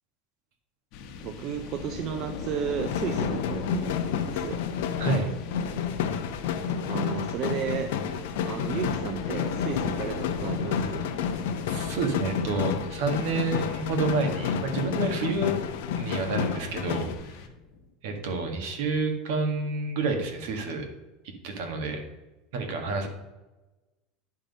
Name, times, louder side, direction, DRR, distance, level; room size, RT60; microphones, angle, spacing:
sound 1, 0.9-17.9, left 5 dB, 45° left, 0.9 m, -39 dB
voice 1, 1.2-4.6 6.9-7.9 8.4-11.1, right 9 dB, 35° right, 7 dB, 0.4 m, -33 dB
sound 2, 2.8-17.2, left 7 dB, 85° left, 0.7 m, -30 dB
voice 2, 5.0-5.3 11.7-15.6 16.0-17.4 18.0-20.8 21.4-22.0 22.5-23.1, right 3 dB, 65° right, 4 dB, 1.6 m, -29 dB
10.5 x 3.8 x 5.2 m, 1.1 s
supercardioid pair, 170°, 0 cm